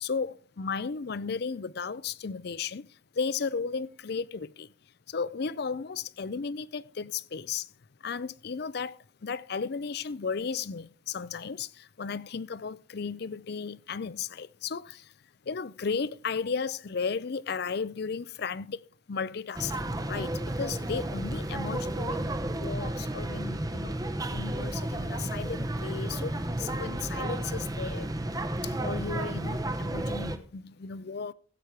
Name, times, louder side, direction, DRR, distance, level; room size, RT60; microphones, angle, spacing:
voice 1, 0.0-2.9 3.2-4.7 5.1-7.7 8.0-9.0 9.2-11.7 12.0-15.0 15.5-18.8 19.1-19.7 20.1-20.3 20.6-22.2 22.5-23.9 24.3-26.3 26.6-28.1 28.6-31.3, left 5 dB, 50° left, 0.5 m, -34 dB
sound 1, 19.5-30.4, right 1 dB, 20° right, 0.8 m, -32 dB
15.0 x 8.3 x 4.6 m
head